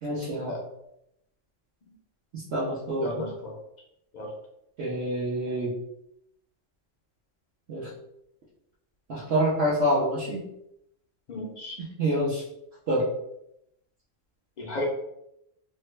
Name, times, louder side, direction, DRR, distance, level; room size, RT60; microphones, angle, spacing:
voice 1, 0.0-0.6 2.3-3.2 4.8-5.7 7.7-7.9 9.1-10.4 11.8-12.4 12.9-13.1, right 1 dB, 60° right, -8 dB, 1.0 m, -27 dB
voice 2, 3.0-3.5 4.1-4.3 11.3-11.8 14.6-14.9, left 1 dB, 60° left, 0 dB, 0.4 m, -34 dB
3.2 x 2.2 x 3.1 m, 0.79 s
omnidirectional pair, 1.3 m